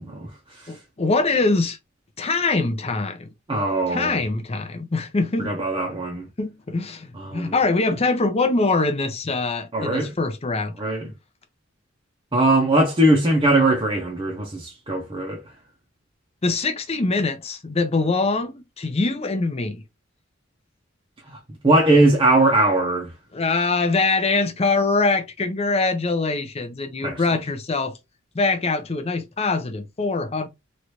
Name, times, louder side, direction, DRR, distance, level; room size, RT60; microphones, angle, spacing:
voice 1, 0.0-0.8 3.5-4.2 5.4-6.3 7.1-7.6 9.7-10.1 10.8-11.1 12.3-15.4 21.3-21.4 21.6-23.1 27.0-27.2, right 2 dB, 25° right, 0.7 m, -20 dB
voice 2, 0.7-1.8 2.2-3.3 3.9-5.5 6.4-10.7 16.4-19.8 23.3-27.9 28.3-30.5, left 3 dB, 30° left, 0.6 m, -23 dB
3.1 x 2.5 x 2.9 m
head